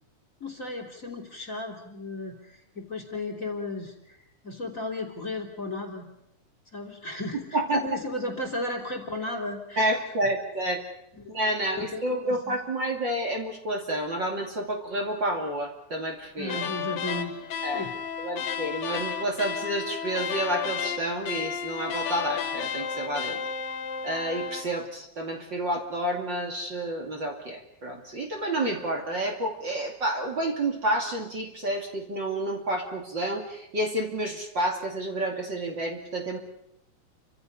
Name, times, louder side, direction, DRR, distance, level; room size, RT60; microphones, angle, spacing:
voice 1, 0.4-4.2 4.4-6.0 6.7-9.9 11.2-11.3 11.9-12.6 16.4-17.3 17.7-18.0, left 2 dB, 25° left, 4 dB, 3.2 m, -35 dB
voice 2, 9.8-10.8 11.3-16.6 17.6-17.9 18.2-23.4 24.0-36.4, right 1 dB, 40° right, 1 dB, 3.0 m, -29 dB
sound 1, 16.4-24.7, left 7 dB, 65° left, 2.7 m, -33 dB
30.0 x 25.5 x 5.6 m, 0.80 s
omnidirectional pair, 3.4 m